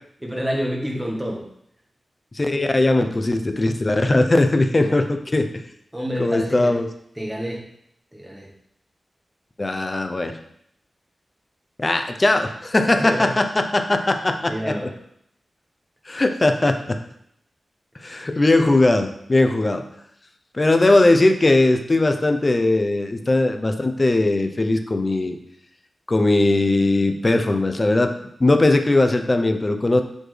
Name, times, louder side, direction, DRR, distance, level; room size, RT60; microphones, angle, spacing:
voice 1, 0.2-1.5 4.7-5.1 5.9-6.7 7.1-7.7 8.1-8.5 12.9-13.4 14.0-14.2 14.4-14.9 18.3-18.4, equal, 5° right, -1 dB, 1.3 m, -28 dB
voice 2, 2.3-5.5 6.2-6.9 9.6-10.4 11.8-14.5 16.1-17.0 18.0-19.8 20.5-25.4 26.1-28.1 28.4-30.0, left 2 dB, 30° left, 6 dB, 0.6 m, -19 dB
7.7 x 4.3 x 3.3 m, 0.72 s
wide cardioid pair, 110°, 0 cm